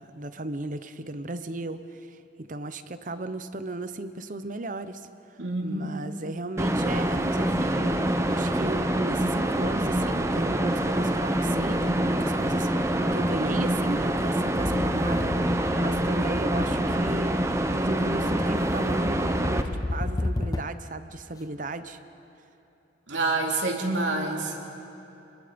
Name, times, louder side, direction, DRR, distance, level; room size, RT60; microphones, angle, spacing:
voice 1, 0.0-5.0 5.6-17.4 17.7-22.0, right 2 dB, 45° right, 11 dB, 0.9 m, -35 dB
voice 2, 5.4-6.0 23.1-24.6, right 2 dB, 80° right, 0 dB, 3.0 m, -27 dB
sound 1, 6.6-19.6, right 1 dB, 15° right, 0.9 m, -26 dB
sound 2, 14.6-21.0, left 2 dB, 20° left, 0.4 m, -33 dB
29.0 x 21.5 x 5.2 m, 2.9 s
head